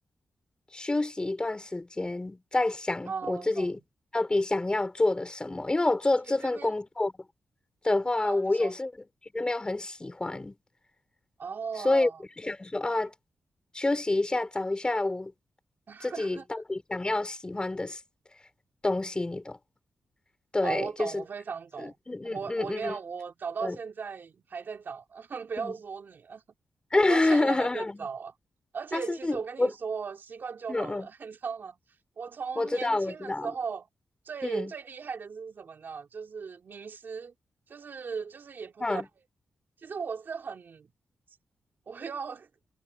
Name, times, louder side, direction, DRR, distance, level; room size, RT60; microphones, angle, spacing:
voice 1, 0.7-3.8 4.1-7.1 7.8-8.9 9.3-10.5 11.8-12.1 12.4-13.1 13.7-15.3 16.0-18.0 18.8-19.6 20.5-21.2 21.8-22.9 23.6-23.8 25.6-25.7 26.9-28.1 28.9-29.7 30.7-31.1 32.6-33.5 34.4-34.7 38.8-39.1, left 2 dB, 25° left, 4.2 m, -28 dB
voice 2, 3.1-3.8 6.3-6.7 8.2-8.7 11.4-12.2 13.0-13.1 15.9-16.4 20.6-21.9 22.2-26.4 27.0-28.3 28.7-31.8 32.2-33.9 34.2-37.3 37.7-39.0 39.8-40.9 41.9-42.5, right 5 dB, 60° right, 2.9 m, -37 dB
cardioid pair, 70°, 4 cm